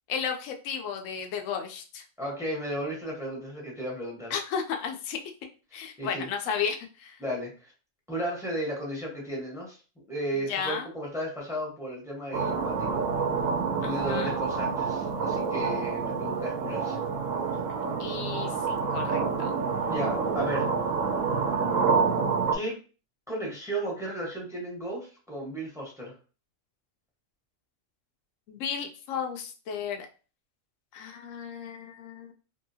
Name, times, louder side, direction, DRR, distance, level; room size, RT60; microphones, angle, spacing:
voice 1, 0.1-2.0 4.3-5.2 5.7-7.2 10.4-10.9 13.8-14.4 18.0-19.5 28.5-30.1 30.9-32.3, left 7 dB, 75° left, 3 dB, 0.9 m, -34 dB
voice 2, 2.2-4.3 5.7-6.3 7.2-7.7 8.1-9.8 10.1-13.0 13.5-17.0 19.9-20.7 22.5-22.8 23.3-26.1, equal, 5° right, -2 dB, 0.9 m, -34 dB
sound 1, 12.3-22.6, right 5 dB, 80° right, 1.0 m, -28 dB
2.9 x 2.7 x 2.7 m, 0.35 s
omnidirectional pair, 1.4 m